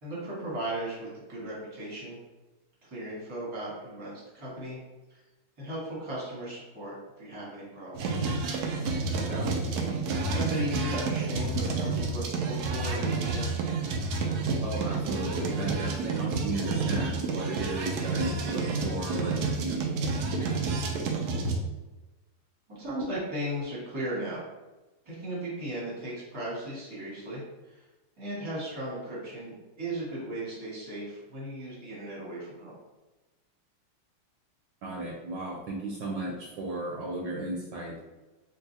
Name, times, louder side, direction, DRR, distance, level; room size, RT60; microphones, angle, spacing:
voice 1, 0.0-2.2 2.8-4.8 5.1-5.2 5.6-8.2 9.3-9.5 10.3-13.5 22.7-24.4 25.0-27.7 28.2-32.8, right 1 dB, 20° right, -7 dB, 1.0 m, -36 dB
sound 1, 7.9-21.6, right 3 dB, 90° right, 0.8 m, -30 dB
voice 2, 9.1-9.5 14.6-20.5 34.8-38.0, right 2 dB, 70° right, -4 dB, 1.2 m, -35 dB
3.9 x 2.5 x 2.7 m, 1.1 s
omnidirectional pair, 2.2 m